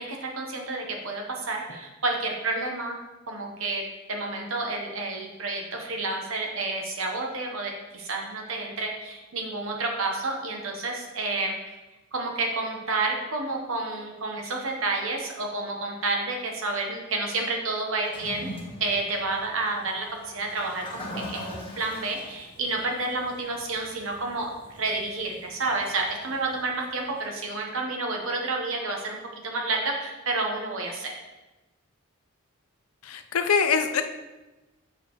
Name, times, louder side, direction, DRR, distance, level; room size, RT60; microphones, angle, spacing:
voice 1, 0.0-2.9 3.3-11.5 12.1-18.5 18.8-29.2 29.4-31.1, right 3 dB, 65° right, 1 dB, 1.0 m, -30 dB
Toilet flush, 18.0-27.3, left 1 dB, 25° left, 1.4 m, -43 dB
voice 2, 33.0-34.0, left 6 dB, 85° left, 7 dB, 0.6 m, -23 dB
7.8 x 6.6 x 3.1 m, 1.1 s
head